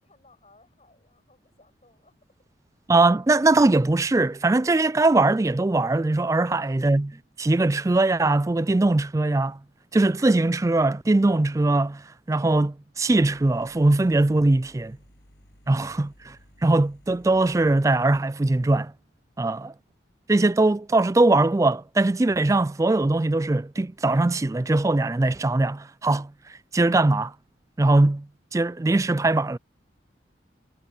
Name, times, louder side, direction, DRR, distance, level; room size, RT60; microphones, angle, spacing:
voice 1, 0.0-2.2, left 2 dB, 35° left, 6.7 m, -60 dB
voice 2, 2.9-9.6 9.9-15.0 15.7-16.4 16.6-18.9 19.4-19.7 20.3-26.3 26.7-27.3 27.8-28.3 28.5-29.6, right 2 dB, 15° right, 0.3 m, -21 dB
sound 1, 13.1-18.2, equal, 60° left, 7.3 m, -55 dB
head